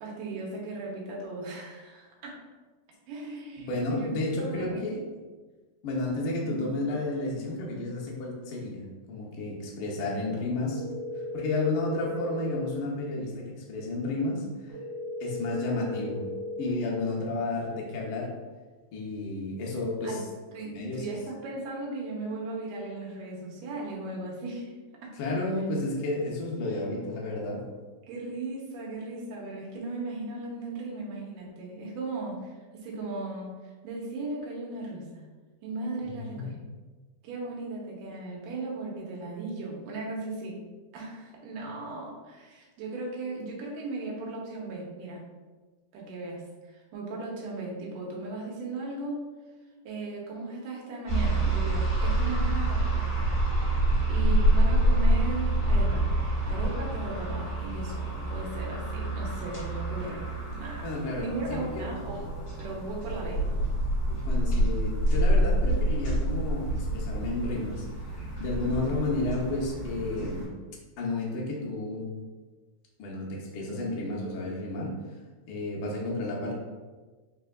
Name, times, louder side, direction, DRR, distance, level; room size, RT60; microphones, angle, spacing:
voice 1, 0.0-2.4 3.1-4.9 6.4-6.7 20.0-20.3 20.5-24.7 25.0-25.2 28.1-33.5 33.8-35.3 35.6-36.5 37.2-40.6 40.9-45.2 45.9-49.3 49.9-53.4 54.1-56.1 56.5-60.9 61.2-63.4, right 2 dB, 75° right, -2 dB, 1.9 m, -37 dB
voice 2, 3.6-5.0 5.8-8.8 9.1-10.8 11.3-14.7 15.2-16.2 16.6-18.3 18.9-20.2 20.7-21.1 25.2-27.6 36.3-36.5 60.8-61.9 64.2-67.9 68.4-70.5 71.0-72.1 73.0-75.0 75.5-76.5, left 2 dB, 85° left, -2 dB, 1.2 m, -31 dB
sound 1, 10.7-12.7 14.7-16.7, left 2 dB, 30° right, 1.1 m, -36 dB
sound 2, 51.1-70.5, right 1 dB, 40° left, 1.6 m, -27 dB
4.3 x 3.4 x 2.3 m, 1.3 s
omnidirectional pair, 3.4 m